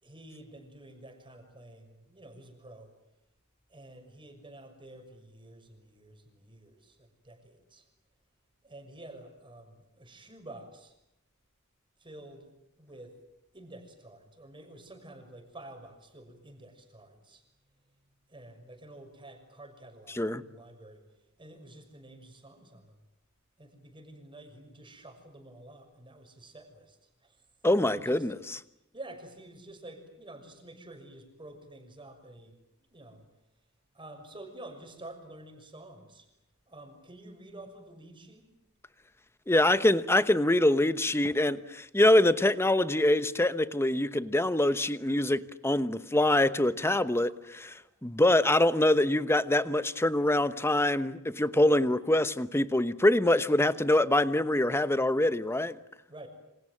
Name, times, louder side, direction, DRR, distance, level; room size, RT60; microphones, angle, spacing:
voice 1, 0.0-2.9 3.7-7.9 8.6-10.9 12.0-12.5 12.8-13.2 13.5-17.4 18.3-21.0 21.4-23.0 23.6-27.4 27.8-28.3 28.9-32.6 32.9-33.3 33.9-36.3 36.7-38.5 47.3-47.9 56.1-56.3, right 1 dB, 25° right, 6.2 m, -49 dB
voice 2, 27.6-28.6 39.5-55.8, left 1 dB, 10° left, 1.0 m, -25 dB
28.5 x 26.5 x 7.5 m
head